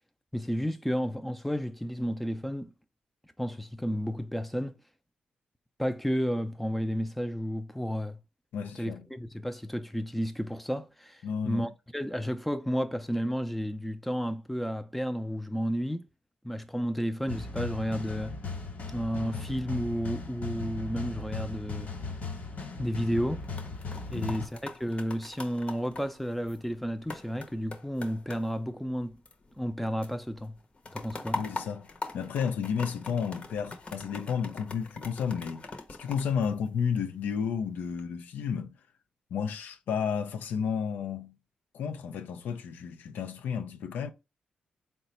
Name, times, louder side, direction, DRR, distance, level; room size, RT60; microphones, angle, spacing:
voice 1, 0.3-2.7 3.4-4.8 5.8-8.2 8.8-16.1 16.4-18.4 18.9-21.9 22.8-23.5 24.1-29.2 29.6-30.6 30.9-31.4, equal, 5° left, 0.4 m, -32 dB
voice 2, 8.5-9.0 11.2-11.7 24.1-24.4 31.3-31.9 32.1-35.6 36.0-38.8 39.3-41.4 41.7-44.1, left 7 dB, 90° left, 0.5 m, -32 dB
sound 1, 17.3-24.5, left 4 dB, 65° left, 1.2 m, -38 dB
sound 2, 23.3-29.8 30.0-37.2 37.7-38.0, left 3 dB, 45° left, 0.8 m, -43 dB
3.8 x 2.2 x 4.1 m
cardioid pair, 75°, 3 cm